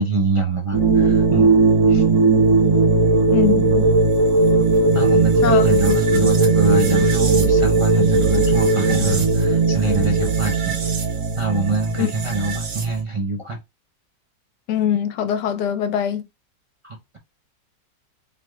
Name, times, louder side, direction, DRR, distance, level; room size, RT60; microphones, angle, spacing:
voice 1, 0.0-1.6 1.9-2.0 4.9-10.8 11.4-13.6 16.8-17.2, right 3 dB, 50° right, 0.4 m, -24 dB
sound 1, 0.7-13.0, right 3 dB, 65° right, 1.6 m, -17 dB
voice 2, 3.3-3.8 5.4-5.7 12.0-12.1 14.7-16.3, left 9 dB, 75° left, 1.3 m, -22 dB
4.9 x 3.7 x 2.3 m
omnidirectional pair, 1.9 m